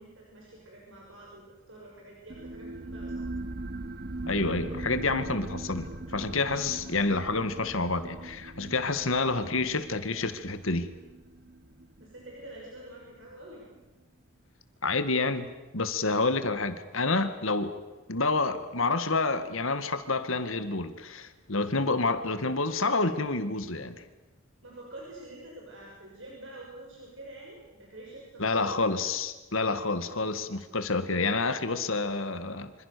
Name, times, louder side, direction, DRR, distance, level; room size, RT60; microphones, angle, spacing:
voice 1, 0.0-3.3 12.0-13.7 24.6-29.0, right 1 dB, 60° right, -2 dB, 6.3 m, -47 dB
sound 1, 2.3-13.4, right 2 dB, 45° right, 1.3 m, -40 dB
voice 2, 4.3-10.9 14.8-17.7 18.1-24.0 28.4-32.8, left 3 dB, 70° left, 10 dB, 2.1 m, -28 dB
27.0 x 26.5 x 7.0 m, 1.1 s
head